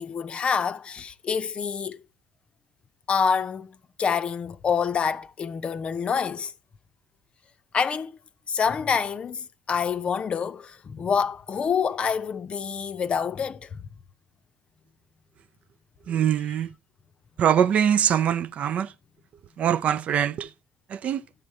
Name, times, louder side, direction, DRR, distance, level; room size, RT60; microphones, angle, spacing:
voice 1, 0.0-2.0 3.1-3.7 4.0-6.5 7.7-8.1 8.5-13.8, left 6 dB, 35° left, 0.6 m, -27 dB
voice 2, 16.1-16.7 17.4-18.9 19.6-20.5 20.9-21.2, right 9 dB, 45° right, 0.5 m, -23 dB
13.0 x 7.3 x 4.7 m
figure-of-eight pair, 55°, 3 cm